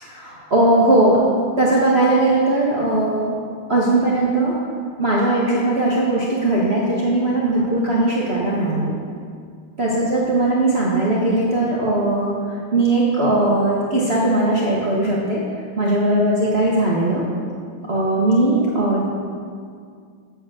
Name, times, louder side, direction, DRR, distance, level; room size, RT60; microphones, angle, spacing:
voice 1, 0.0-1.2 1.6-3.3 3.7-4.5 5.0-8.9 9.8-15.4 15.8-17.2 17.9-19.1, right 2 dB, 35° right, -6 dB, 1.2 m, -19 dB
7.9 x 7.4 x 6.9 m, 2.2 s
omnidirectional pair, 2.3 m